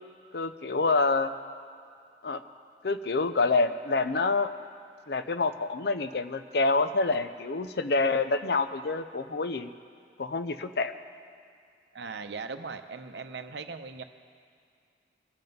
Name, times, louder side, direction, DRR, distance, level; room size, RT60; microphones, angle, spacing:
voice 1, 0.3-1.3 2.2-2.4 2.8-4.5 5.1-9.7 10.2-10.9, left 3 dB, 60° left, 10 dB, 0.6 m, -27 dB
voice 2, 11.9-14.0, right 4 dB, 70° right, 8 dB, 0.7 m, -39 dB
22.5 x 7.7 x 5.4 m, 2.3 s
head